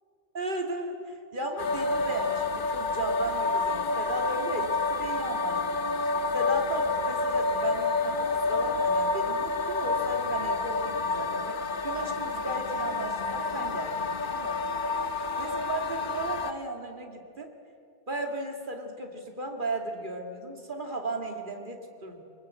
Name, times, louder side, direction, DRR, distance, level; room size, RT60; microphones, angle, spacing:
voice 1, 0.3-14.6 15.4-17.5 18.1-22.2, right 2 dB, 45° right, 3 dB, 2.4 m, -35 dB
sound 1, 1.6-16.5, left 3 dB, 50° left, 1.1 m, -29 dB
24.0 x 19.5 x 8.2 m, 2.6 s
omnidirectional pair, 1.2 m